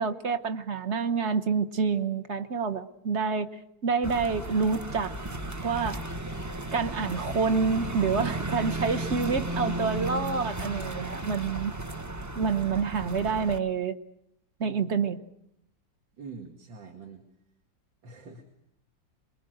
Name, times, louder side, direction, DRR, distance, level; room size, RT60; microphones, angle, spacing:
voice 1, 0.0-3.5 3.8-5.1 5.6-6.0 6.7-11.7 12.3-13.9 14.6-15.2, right 5 dB, 40° right, 7 dB, 1.2 m, -27 dB
sound 1, 4.0-13.6, right 2 dB, 20° right, 0.4 m, -34 dB
voice 2, 16.2-17.2 18.0-18.5, right 4 dB, 80° right, 2 dB, 2.9 m, -44 dB
27.5 x 22.0 x 7.8 m, 0.79 s
omnidirectional pair, 2.0 m